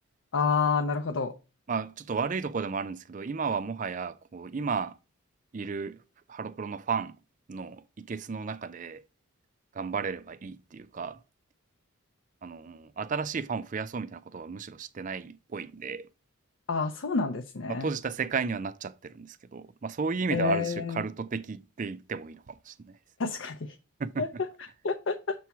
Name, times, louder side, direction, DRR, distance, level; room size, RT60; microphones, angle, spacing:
voice 1, 0.3-1.3 16.7-17.9 20.3-21.0 23.2-23.8 24.2-24.3 24.8-25.3, left 4 dB, 55° left, 0.5 m, -28 dB
voice 2, 1.7-5.0 5.5-6.0 6.3-7.1 7.5-9.0 9.7-11.2 12.4-16.1 17.7-23.0 24.0-24.2, right 5 dB, 35° right, 0.4 m, -33 dB
6.9 x 3.1 x 5.7 m
head